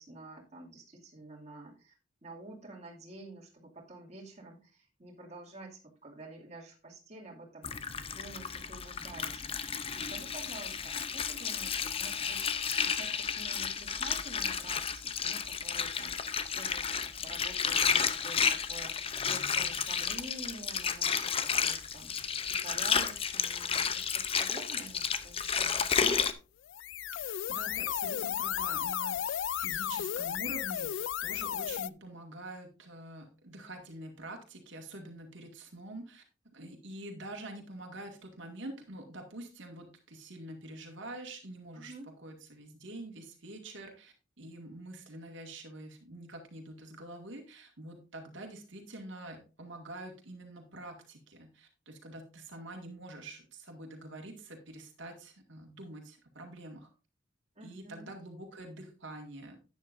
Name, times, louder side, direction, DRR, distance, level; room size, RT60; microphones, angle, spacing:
voice 1, 0.0-1.9 2.2-26.0 41.7-42.1 57.6-58.1, right 2 dB, 35° right, -2 dB, 2.5 m, -49 dB
Water, 7.6-26.3, left 6 dB, 30° left, 0.6 m, -32 dB
sound 1, 26.6-31.9, left 10 dB, 85° left, 0.4 m, -34 dB
voice 2, 27.1-36.2 36.5-56.9 57.6-59.6, right 1 dB, 80° right, 2 dB, 2.1 m, -46 dB
11.5 x 9.3 x 2.6 m, 0.33 s
head